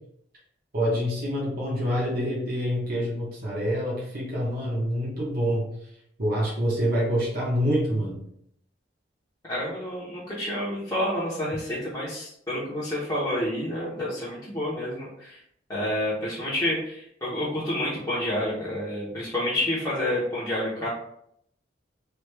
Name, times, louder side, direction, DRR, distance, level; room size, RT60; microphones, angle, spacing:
voice 1, 0.7-5.7 6.2-8.2, equal, 50° right, -5 dB, 0.8 m, -26 dB
voice 2, 9.5-15.4 15.7-20.9, left 1 dB, 20° left, -9 dB, 0.8 m, -29 dB
3.3 x 2.3 x 3.2 m, 0.71 s
head